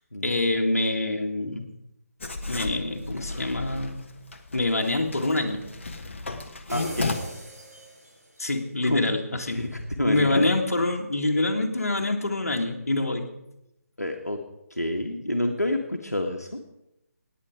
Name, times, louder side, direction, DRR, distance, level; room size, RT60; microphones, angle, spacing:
voice 1, 0.2-1.6 2.5-4.0 4.5-5.7 8.4-9.6 10.0-13.3, left 2 dB, 65° left, 3 dB, 2.0 m, -25 dB
Writing, 2.2-7.1, left 3 dB, 50° left, 1.4 m, -34 dB
voice 2, 6.7-7.1 8.8-9.0 9.5-10.5 14.0-14.4 14.7-16.6, left 1 dB, 85° left, 3 dB, 1.5 m, -28 dB
sound 1, 6.7-8.5, right 1 dB, 85° right, 4.6 m, -39 dB
18.0 x 9.5 x 4.9 m, 0.87 s
figure-of-eight pair, 150°, 8 cm